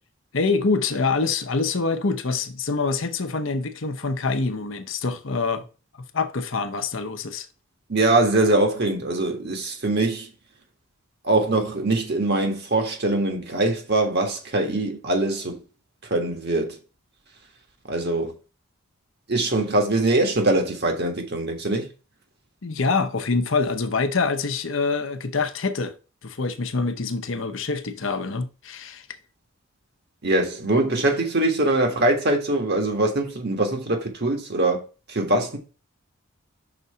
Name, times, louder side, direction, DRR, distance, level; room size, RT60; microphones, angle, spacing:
voice 1, 0.3-5.7 5.9-7.5 22.6-25.9 26.2-29.1, left 4 dB, 65° left, 0.8 m, -25 dB
voice 2, 7.9-10.3 11.2-15.6 16.1-16.7 17.9-18.3 19.3-21.9 30.2-34.8 35.1-35.6, right 2 dB, 50° right, 1.7 m, -22 dB
5.9 x 4.1 x 5.6 m
head